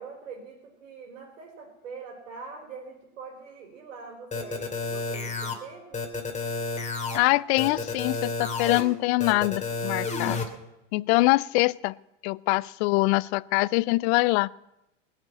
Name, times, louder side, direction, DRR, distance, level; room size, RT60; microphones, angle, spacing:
voice 1, 0.0-6.0, right 5 dB, 80° right, 1 dB, 4.2 m, -43 dB
sound 1, 4.3-5.5 5.9-7.2 7.6-8.8 9.2-10.4, left 4 dB, 20° left, 2.5 m, -30 dB
voice 2, 7.1-10.4 10.9-11.9 12.2-14.5, left 22 dB, 60° left, 23 dB, 0.5 m, -24 dB
18.5 x 7.0 x 9.3 m, 0.91 s
hypercardioid pair, 100°, 38 cm